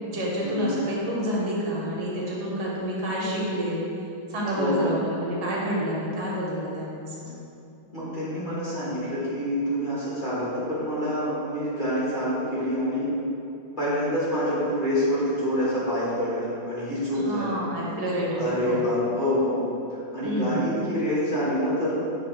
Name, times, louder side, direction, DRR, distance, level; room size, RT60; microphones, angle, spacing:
voice 1, 0.0-3.8 4.3-7.3 17.1-18.8 20.2-20.6, equal, 80° right, -4 dB, 1.5 m, -28 dB
voice 2, 4.6-5.1 7.9-13.1 13.8-17.5 18.3-19.6 19.9-22.0, equal, 35° left, -10 dB, 1.0 m, -26 dB
6.3 x 2.7 x 3.0 m, 2.8 s
omnidirectional pair, 1.7 m